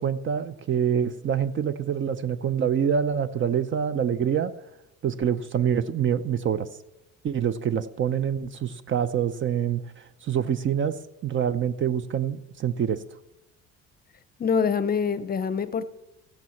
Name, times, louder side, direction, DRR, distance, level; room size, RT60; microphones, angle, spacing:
voice 1, 0.0-4.5 5.0-6.7 7.2-9.8 10.2-11.0 11.2-13.0, right 8 dB, 40° right, 0.6 m, -26 dB
voice 2, 14.4-15.8, left 6 dB, 30° left, 0.7 m, -25 dB
14.5 x 9.2 x 7.1 m
cardioid pair, 115°, 30 cm